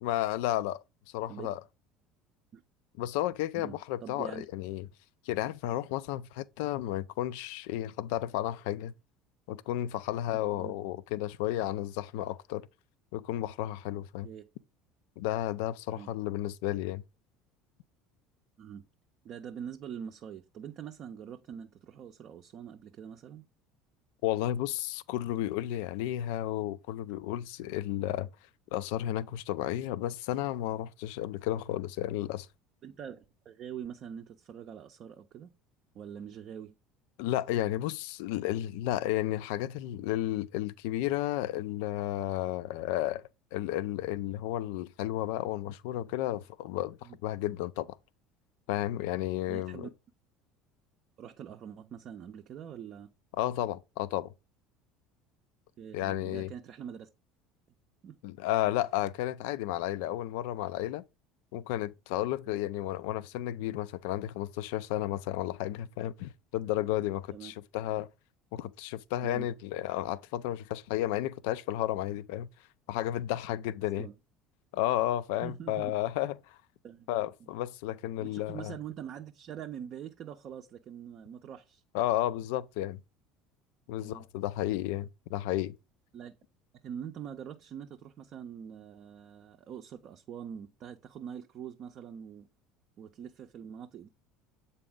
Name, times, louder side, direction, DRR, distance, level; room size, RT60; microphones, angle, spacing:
voice 1, 0.0-0.8 1.1-1.6 3.0-4.9 5.3-8.9 9.5-12.7 13.1-14.3 15.2-17.0 24.2-28.3 28.7-32.5 37.2-43.2 43.5-48.0 48.7-49.9 53.4-54.3 55.9-56.5 58.2-61.0 61.5-68.1 68.5-72.5 72.9-74.1 74.7-76.6 77.1-78.7 81.9-83.0 83.9-85.8, left 14 dB, 65° left, 0.3 m, -32 dB
voice 2, 3.5-4.5 10.5-10.8 14.2-14.5 15.9-16.1 18.6-18.9 19.2-23.5 32.8-35.5 35.9-36.8 47.0-47.2 49.5-49.9 51.2-53.1 55.8-57.1 58.0-58.2 67.3-67.5 69.2-69.5 74.0-74.1 75.4-75.9 76.8-77.1 78.2-81.8 84.0-84.2 86.1-86.4 86.8-92.5 93.0-94.1, right 8 dB, 45° right, 0.5 m, -44 dB
7.6 x 4.1 x 3.6 m
figure-of-eight pair, 65°, 0 cm